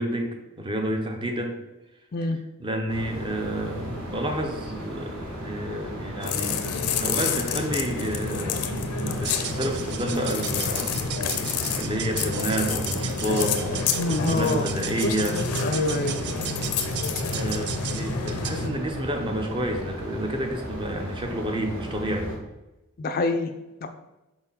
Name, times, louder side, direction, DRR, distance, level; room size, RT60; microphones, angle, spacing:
voice 1, 0.0-1.5 2.6-6.6 6.9-15.4 17.3-22.4, right 1 dB, 20° right, 3 dB, 0.8 m, -30 dB
sound 1, 2.9-22.3, equal, 65° right, 2.2 m, -37 dB
sound 2, 6.2-18.7, left 5 dB, 85° left, 0.6 m, -29 dB
sound 3, 9.2-18.7, right 10 dB, 50° right, 0.4 m, -36 dB
voice 2, 14.2-14.7 15.6-16.2 23.0-23.5 23.8-23.9, left 3 dB, 40° left, 7 dB, 0.4 m, -26 dB
4.5 x 4.4 x 5.6 m, 1.0 s
head